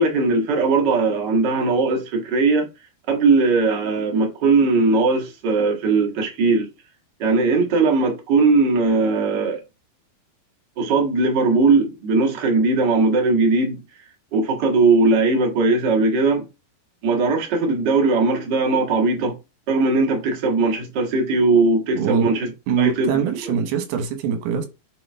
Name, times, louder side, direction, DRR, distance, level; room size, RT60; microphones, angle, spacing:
voice 1, 0.0-2.7 3.1-6.7 7.2-9.6 10.8-13.8 14.3-16.4 17.0-19.3 19.7-22.5 22.8-23.2, right 3 dB, 45° right, 1.5 m, -19 dB
voice 2, 22.0-22.3 22.7-24.7, right 8 dB, 85° right, 3.0 m, -23 dB
7.7 x 3.7 x 3.5 m
omnidirectional pair, 4.4 m